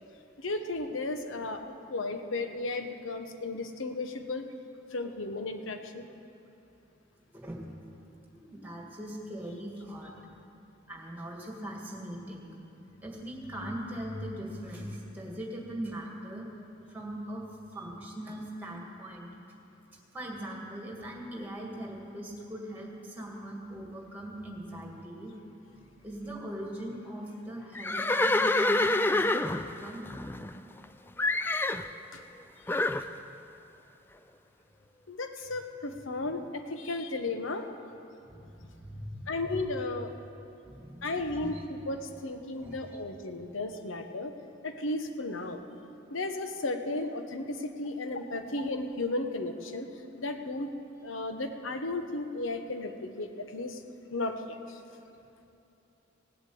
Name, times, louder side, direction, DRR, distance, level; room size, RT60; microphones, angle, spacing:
voice 1, 0.4-4.5 4.9-6.1 32.1-32.2 35.1-37.7 39.3-40.1 41.0-44.3 44.6-45.6 46.1-50.7 51.0-53.8 54.1-54.8, left 2 dB, 75° left, 7 dB, 1.1 m, -34 dB
voice 2, 8.3-10.1 10.9-12.5 13.0-17.4 17.7-19.3 19.9-25.3 26.0-30.0 33.0-33.1 35.4-35.5 38.3-39.4 40.6-41.5 42.6-43.0, right 1 dB, 10° right, -1 dB, 2.0 m, -40 dB
Livestock farm animals working animals, 27.7-30.8 31.2-31.9 32.7-33.1, left 2 dB, 10° left, 0.3 m, -27 dB
17.5 x 8.0 x 8.5 m, 2.8 s
head